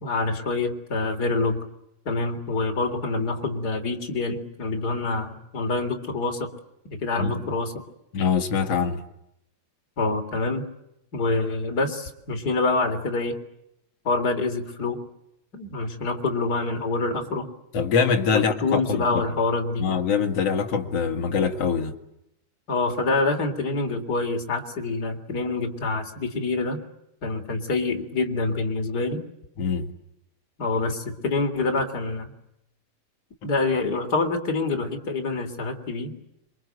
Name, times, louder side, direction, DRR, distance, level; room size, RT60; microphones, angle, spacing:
voice 1, 0.0-1.6 2.0-6.5 6.9-7.7 10.0-10.7 11.1-13.4 14.0-15.0 15.5-17.5 18.3-19.9 22.7-26.8 27.2-29.2 30.6-32.3 33.4-36.1, left 3 dB, 25° left, 2.9 m, -26 dB
voice 2, 8.1-9.0 17.7-19.4 19.8-21.9 29.6-29.9, left 6 dB, 50° left, 2.0 m, -24 dB
27.5 x 26.5 x 8.1 m
omnidirectional pair, 5.8 m